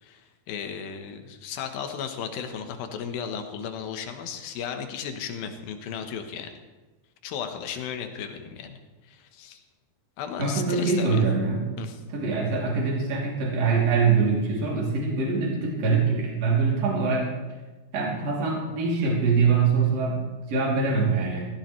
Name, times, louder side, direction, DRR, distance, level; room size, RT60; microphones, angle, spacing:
voice 1, 0.0-6.5 7.2-8.8 9.0-9.6 10.2-11.2 11.8-12.0, left 7 dB, 75° left, 6 dB, 2.8 m, -35 dB
voice 2, 10.4-11.7 12.1-17.3 17.9-21.4, right 4 dB, 45° right, -3 dB, 3.7 m, -24 dB
17.5 x 15.0 x 3.2 m, 1.2 s
omnidirectional pair, 4.3 m